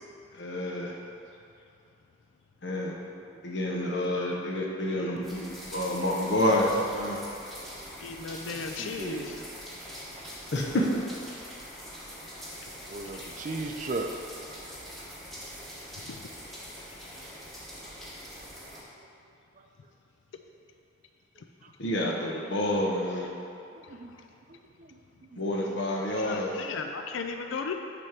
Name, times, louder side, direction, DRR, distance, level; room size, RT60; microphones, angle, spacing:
voice 1, 0.3-0.9 2.6-2.9 3.4-5.4 5.7-7.2 10.5-10.9 21.8-23.3 25.4-26.5, left 1 dB, 65° left, -1 dB, 0.8 m, -28 dB
sound 1, 5.2-18.8, equal, ahead, 1.1 m, -43 dB
voice 2, 8.0-9.4 11.3-11.4 12.6-12.7 13.0-13.3 16.1-16.2 23.8-24.0 26.2-27.7, left 4 dB, 85° left, 5 dB, 0.4 m, -36 dB
voice 3, 8.8-9.5 12.9-14.1 23.9-24.1 24.5-24.9 25.3-25.4, right 3 dB, 40° right, 4 dB, 0.4 m, -37 dB
6.0 x 3.4 x 5.8 m, 2.6 s
head